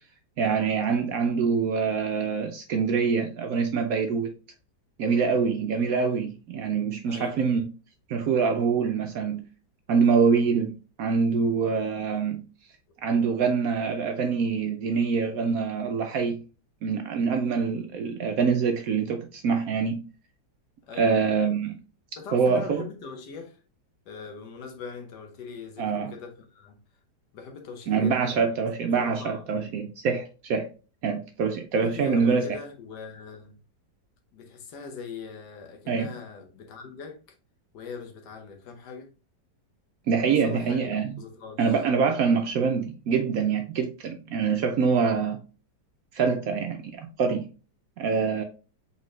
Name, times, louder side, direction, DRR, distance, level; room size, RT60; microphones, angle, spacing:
voice 1, 0.4-4.3 5.0-7.7 8.1-9.4 9.9-12.4 13.0-16.4 16.8-20.0 21.0-21.8 22.3-22.8 25.8-26.1 27.9-30.7 31.0-32.5 35.9-36.1 40.1-41.1 41.6-45.4 46.1-47.5 48.0-48.4, right 5 dB, 70° right, 0.9 m, -25 dB
voice 2, 7.0-7.4 20.9-21.2 22.2-23.6 24.1-26.8 27.3-28.5 28.8-29.5 31.8-33.6 34.3-37.2 37.7-39.1 40.4-41.8, left 5 dB, 75° left, 1.5 m, -41 dB
3.9 x 3.6 x 3.1 m
omnidirectional pair, 1.9 m